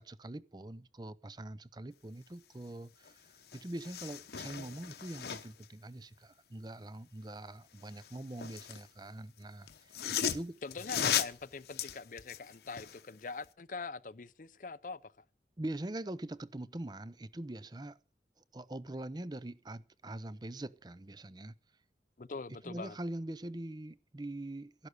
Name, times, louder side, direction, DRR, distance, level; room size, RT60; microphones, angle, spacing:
voice 1, 0.0-3.2 3.5-10.5 15.6-18.0 18.5-21.6 22.6-24.9, right 1 dB, 25° right, 0.6 m, -43 dB
sound 1, 3.0-3.1 3.4-5.7 7.8-8.9 9.7-13.0 13.4-13.5, left 8 dB, 65° left, 1.0 m, -37 dB
voice 2, 10.6-15.2 22.2-23.0, left 4 dB, 45° left, 0.6 m, -43 dB
12.5 x 11.5 x 6.7 m
head